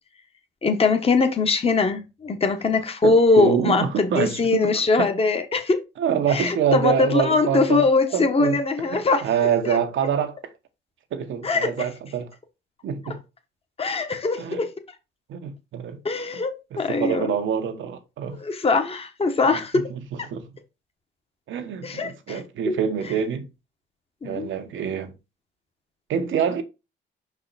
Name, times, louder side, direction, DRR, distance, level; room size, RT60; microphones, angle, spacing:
voice 1, 0.6-5.8 6.3-9.2 9.6-10.1 11.4-11.7 13.8-14.7 16.0-17.3 18.4-19.9 21.8-22.4 22.6-22.8 24.2-24.5, left 3 dB, 30° left, 1.3 m, -22 dB
voice 2, 3.0-4.7 5.0-5.1 6.0-7.8 8.1-8.6 8.9-10.4 11.1-12.3 12.8-13.2 14.4-14.7 15.3-16.0 16.7-18.4 19.7-20.5 21.5-23.5 24.2-25.1 26.1-26.6, right 8 dB, 75° right, 1.3 m, -26 dB
5.7 x 4.8 x 4.0 m
cardioid pair, 90°, 20 cm